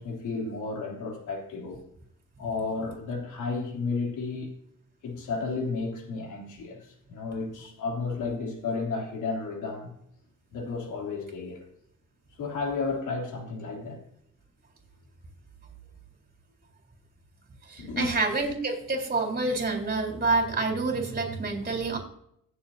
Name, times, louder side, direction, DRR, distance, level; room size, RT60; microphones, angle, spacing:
voice 1, 0.0-1.8 2.4-4.5 5.0-9.9 10.5-11.6 12.4-14.0 17.8-18.1, left 4 dB, 75° left, 3.2 m, -32 dB
voice 2, 17.7-22.0, right 3 dB, 30° right, 4.0 m, -28 dB
16.5 x 7.5 x 2.8 m
cardioid pair, 90°, 30 cm